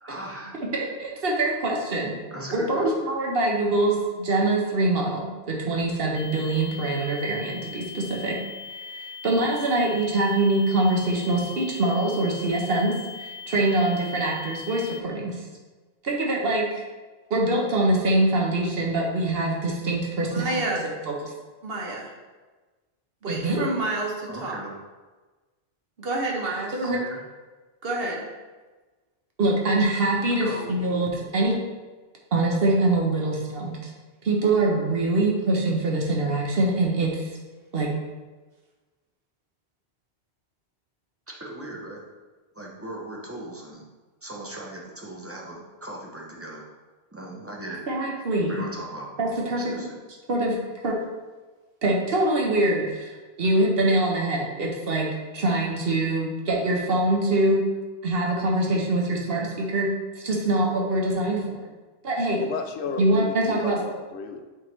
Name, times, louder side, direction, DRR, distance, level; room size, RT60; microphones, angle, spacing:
voice 1, 0.0-0.5 2.3-2.9 24.3-24.7 26.8-27.2 30.4-30.7 41.4-42.0 42.5-43.8 44.2-46.6 47.1-47.8 48.5-49.1 49.6-50.0, right 1 dB, 15° right, -2 dB, 0.8 m, -38 dB
voice 2, 0.7-2.1 2.5-8.4 8.7-15.4 16.0-16.8 17.3-21.3 21.6-22.1 23.2-24.1 24.4-24.6 26.0-27.0 27.8-28.2 29.4-31.6 32.3-33.9 34.2-37.3 37.7-37.9 47.9-48.6 49.2-49.6 50.3-50.6 50.8-51.0 51.8-53.1 53.4-55.1 55.3-57.6 58.0-59.9 60.2-61.4 62.0-62.4 63.0-63.8, right 2 dB, 60° right, -1 dB, 1.3 m, -24 dB
sound 1, 6.1-15.0, left 6 dB, 60° left, 0.4 m, -40 dB
voice 3, 62.4-64.4, left 4 dB, 80° left, 6 dB, 0.9 m, -33 dB
7.9 x 3.7 x 3.2 m, 1.3 s
omnidirectional pair, 1.1 m